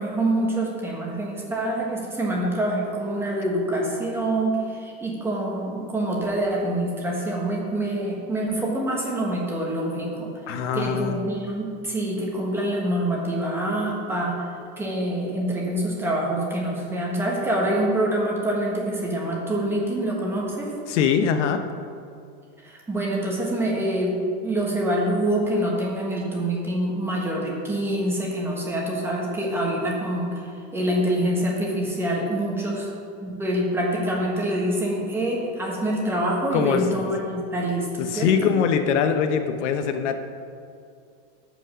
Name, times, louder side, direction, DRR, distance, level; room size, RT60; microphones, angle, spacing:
voice 1, 0.0-10.3 10.7-14.4 14.8-20.7 22.6-30.4 30.7-32.9 33.2-38.3, right 1 dB, 5° right, -3 dB, 1.3 m, -26 dB
voice 2, 10.5-11.2 20.9-21.6 36.5-37.0 38.0-40.2, left 7 dB, 80° left, 8 dB, 1.0 m, -23 dB
13.0 x 5.3 x 6.2 m, 2.3 s
supercardioid pair, 180°, 35 cm